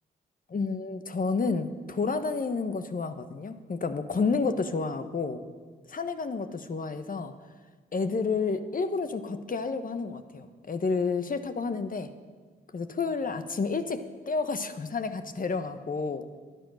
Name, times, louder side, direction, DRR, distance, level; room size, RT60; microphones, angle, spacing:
voice 1, 0.5-5.4 5.9-7.3 7.9-12.1 12.7-16.3, left 4 dB, 40° left, 9 dB, 1.2 m, -30 dB
11.0 x 10.5 x 6.5 m, 1.5 s
hypercardioid pair, 45°, 21 cm